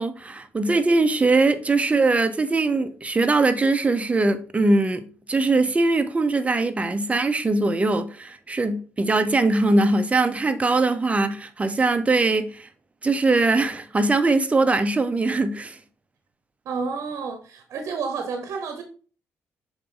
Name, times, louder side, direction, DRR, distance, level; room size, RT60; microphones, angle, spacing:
voice 1, 0.0-12.7 13.0-15.8, right 3 dB, 25° right, 0.9 m, -21 dB
voice 2, 16.6-18.8, right 5 dB, 70° right, 1.0 m, -30 dB
6.5 x 4.0 x 3.9 m
cardioid pair, 80°, 5 cm